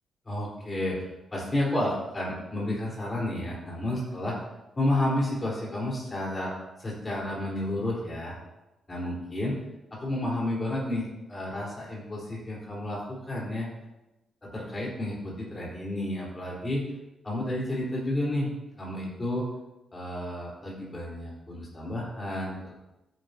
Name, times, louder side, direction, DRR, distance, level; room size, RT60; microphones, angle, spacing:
voice 1, 0.3-1.0 1.3-4.3 4.8-6.5 6.8-8.4 8.9-9.5 9.9-13.7 14.5-16.8 17.2-19.5 19.9-22.5, left 1 dB, 20° left, -4 dB, 3.8 m, -31 dB
14.0 x 9.4 x 2.7 m, 0.99 s
wide cardioid pair, 145°, 0 cm